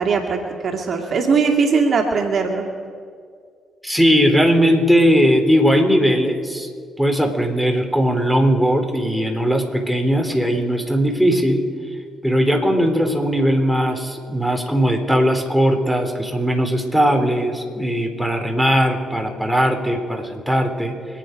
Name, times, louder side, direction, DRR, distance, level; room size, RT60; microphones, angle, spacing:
voice 1, 0.0-2.7, right 5 dB, 60° right, 1 dB, 2.2 m, -20 dB
voice 2, 3.8-6.7 7.0-11.6 12.2-20.9, equal, 5° left, 4 dB, 3.6 m, -18 dB
27.0 x 9.4 x 5.2 m, 2.1 s
hypercardioid pair, 45°, 0 cm